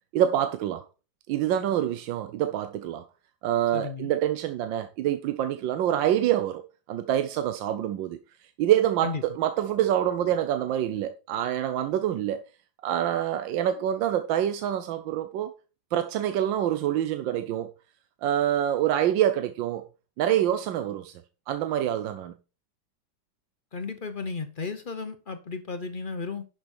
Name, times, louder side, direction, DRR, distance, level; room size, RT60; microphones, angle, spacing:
voice 1, 0.1-0.9 1.3-3.0 3.4-6.6 6.9-8.2 8.6-12.4 12.8-15.5 15.9-17.7 18.2-19.8 20.2-21.2 21.5-22.3, right 11 dB, 80° right, 1.4 m, -26 dB
voice 2, 3.7-4.1 9.0-9.2 23.7-26.5, left 4 dB, 45° left, 0.7 m, -34 dB
11.0 x 6.0 x 4.3 m
omnidirectional pair, 2.0 m